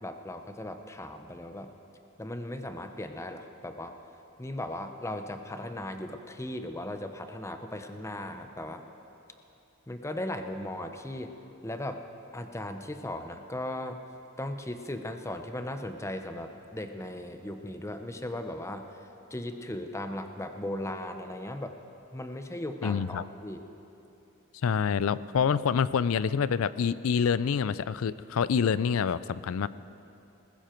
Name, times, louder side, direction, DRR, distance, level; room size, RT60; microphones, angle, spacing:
voice 1, 0.0-1.7 2.2-4.0 4.4-8.9 9.9-11.3 11.6-12.0 12.3-14.0 14.4-18.9 19.3-21.8 22.1-23.6, left 1 dB, 15° left, 7 dB, 0.7 m, -37 dB
voice 2, 22.8-23.2 24.6-29.7, left 6 dB, 70° left, 17 dB, 0.4 m, -27 dB
19.5 x 15.5 x 4.5 m, 2.9 s
head